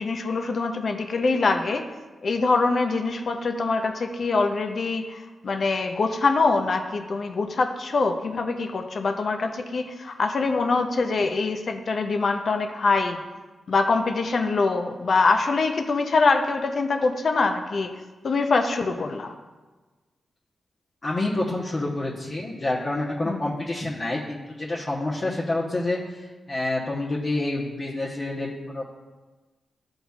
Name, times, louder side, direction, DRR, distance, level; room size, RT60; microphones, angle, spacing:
voice 1, 0.0-1.8 2.2-13.2 13.7-17.9 18.2-19.3 23.2-23.5, left 3 dB, 60° left, 5 dB, 0.5 m, -24 dB
voice 2, 21.0-28.9, left 2 dB, 40° left, -4 dB, 0.9 m, -28 dB
11.5 x 3.9 x 2.3 m, 1.3 s
cardioid pair, 65°, 0 cm